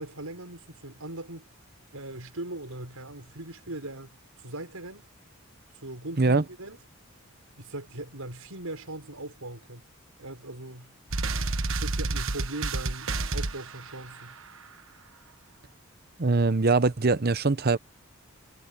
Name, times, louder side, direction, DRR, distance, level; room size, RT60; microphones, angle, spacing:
voice 1, 0.0-1.5 1.9-4.1 4.4-5.1 5.8-6.8 7.6-9.8 10.2-10.9 11.7-14.3, right 2 dB, 80° right, 6.0 m, -40 dB
sound 1, 11.1-14.3, right 3 dB, 65° right, 1.4 m, -30 dB
voice 2, 16.2-17.8, right 3 dB, 45° right, 0.8 m, -22 dB
head